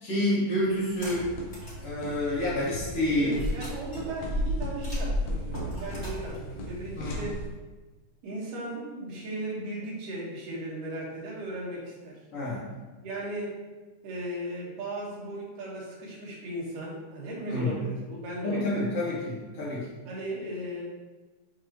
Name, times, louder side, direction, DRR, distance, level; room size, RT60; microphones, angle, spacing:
voice 1, 0.0-1.3 1.8-3.4 7.0-7.2 12.3-12.6 17.5-17.8 18.4-19.8, left 1 dB, 50° left, -8 dB, 3.2 m, -28 dB
sound 1, 0.8-1.8 2.3-2.4 3.3-7.6, left 1 dB, 30° left, 1.6 m, -33 dB
sound 2, 1.2-7.5, left 1 dB, 70° left, 2.1 m, -40 dB
voice 2, 3.1-7.4 8.2-12.2 13.0-13.6 14.0-19.2 20.0-20.8, right 1 dB, 75° right, -5 dB, 3.2 m, -37 dB
10.5 x 4.0 x 3.0 m, 1.2 s
omnidirectional pair, 3.8 m